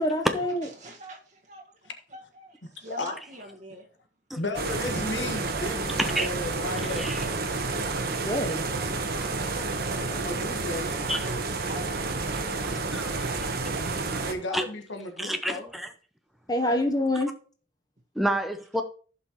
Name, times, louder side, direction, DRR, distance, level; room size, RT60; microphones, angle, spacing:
voice 1, 0.0-0.7 8.0-8.7 16.5-17.3, left 1 dB, 20° left, 5 dB, 0.9 m, -26 dB
voice 2, 0.6-1.7 2.1-3.9 11.6-13.7, right 1 dB, 40° right, 0 dB, 1.7 m, -46 dB
voice 3, 2.8-3.2 4.4-7.0 9.9-11.1 14.3-15.7 16.6-16.8, left 2 dB, 80° left, 5 dB, 1.5 m, -34 dB
sound 1, 4.5-14.3, right 3 dB, 55° right, 1.1 m, -30 dB
voice 4, 7.0-7.3 11.1-11.2 12.9-13.1 14.5-14.6 15.2-15.9 16.7-16.8 17.2-17.3 18.2-18.8, right 1 dB, ahead, 5 dB, 0.6 m, -28 dB
15.5 x 5.6 x 3.0 m, 0.40 s
head